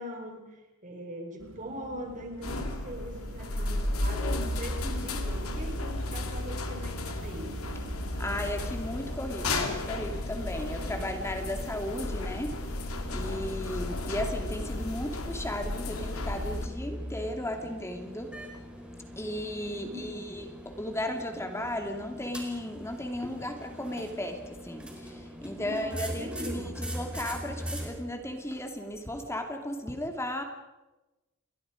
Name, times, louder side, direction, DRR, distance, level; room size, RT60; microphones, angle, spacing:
voice 1, 0.0-7.6 19.7-20.3 25.6-26.8, equal, 35° right, 3 dB, 5.0 m, -41 dB
sound 1, 1.4-9.2, right 1 dB, 85° right, 1.2 m, -44 dB
sound 2, 2.4-16.7, left 2 dB, 80° left, 2.9 m, -33 dB
voice 2, 8.1-18.4 19.0-30.4, left 1 dB, 15° left, 4 dB, 2.5 m, -35 dB
sound 3, 8.9-27.9, equal, 5° right, 4.4 m, -42 dB
29.0 x 22.5 x 5.1 m, 1.1 s
head